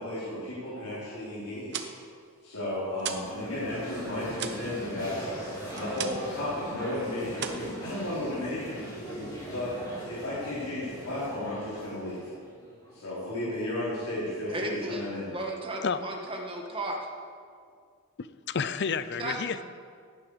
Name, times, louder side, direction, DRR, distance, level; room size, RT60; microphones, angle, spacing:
voice 1, 0.0-1.9 2.4-5.5 5.7-9.0 9.4-9.7 10.1-12.3 12.9-15.3, left 1 dB, 90° left, -10 dB, 4.1 m, -34 dB
sound 1, 1.5-3.4 3.7-6.4 6.7-7.0 7.3-8.4, right 7 dB, 50° right, 0.9 m, -38 dB
sound 2, 3.0-13.1, equal, 20° left, 3.4 m, -40 dB
voice 2, 14.5-15.0 15.3-17.0 19.2-19.6, right 1 dB, 25° right, 1 dB, 1.7 m, -34 dB
voice 3, 18.2-19.6, left 5 dB, 50° left, 14 dB, 0.5 m, -30 dB
17.0 x 10.0 x 4.9 m, 2.1 s
head